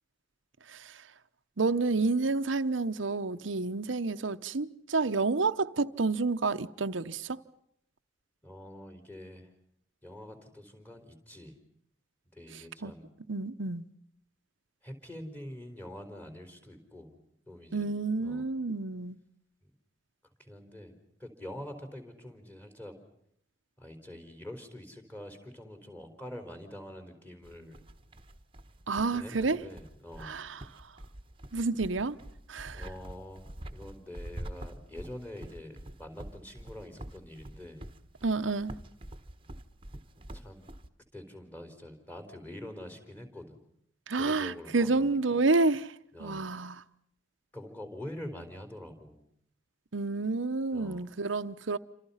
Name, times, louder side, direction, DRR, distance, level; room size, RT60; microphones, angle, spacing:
voice 1, 1.6-7.4 12.8-12.9 13.3-13.8 17.7-19.2 28.9-29.6 30.2-30.6 31.5-32.2 32.5-32.8 38.2-38.8 44.1-45.9 46.2-46.8 49.9-51.8, right 3 dB, 85° right, 0.9 m, -29 dB
voice 2, 8.4-9.5 10.0-11.6 12.3-13.1 14.8-17.2 17.5-17.9 18.2-18.5 19.6-19.7 20.4-22.9 23.8-27.8 29.1-30.4 32.7-37.9 40.3-40.7 41.1-43.7 44.1-45.2 46.1-46.5 47.5-49.2 50.7-51.1, left 1 dB, 10° left, 4.4 m, -45 dB
sound 1, 27.4-40.9, right 1 dB, 30° right, 1.4 m, -46 dB
29.0 x 26.5 x 5.7 m
head